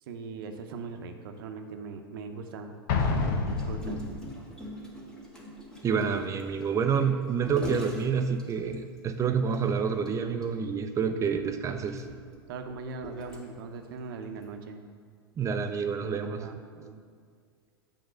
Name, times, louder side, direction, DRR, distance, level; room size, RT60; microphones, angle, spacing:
voice 1, 0.1-4.0 12.5-14.8 16.3-17.0, right 4 dB, 65° right, 6 dB, 0.8 m, -40 dB
Explosion, 2.9-4.5, left 4 dB, 55° left, 0.9 m, -28 dB
Gurgling, 3.5-9.0 9.5-9.6 9.9-10.1 10.4-10.5 11.3-13.8 14.4-14.6, equal, 5° left, 1.6 m, -41 dB
voice 2, 5.8-12.0 15.4-16.5, right 6 dB, 25° right, 7 dB, 0.6 m, -28 dB
8.0 x 3.6 x 6.2 m, 2.1 s
hypercardioid pair, 100°, 13 cm